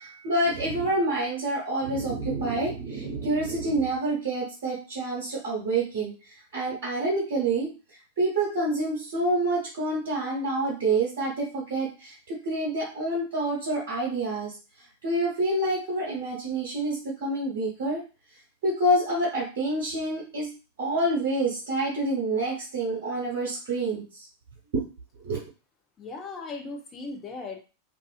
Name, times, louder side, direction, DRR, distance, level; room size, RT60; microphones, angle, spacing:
voice 1, 0.0-6.1 6.5-7.7 8.2-14.5 15.0-18.0 18.6-20.5 20.8-24.0 25.2-25.4, right 2 dB, 55° right, -5 dB, 1.0 m, -27 dB
voice 2, 26.0-27.6, left 3 dB, 25° left, 2 dB, 0.6 m, -37 dB
2.5 x 2.4 x 2.3 m, 0.32 s
figure-of-eight pair, 90°, 0 cm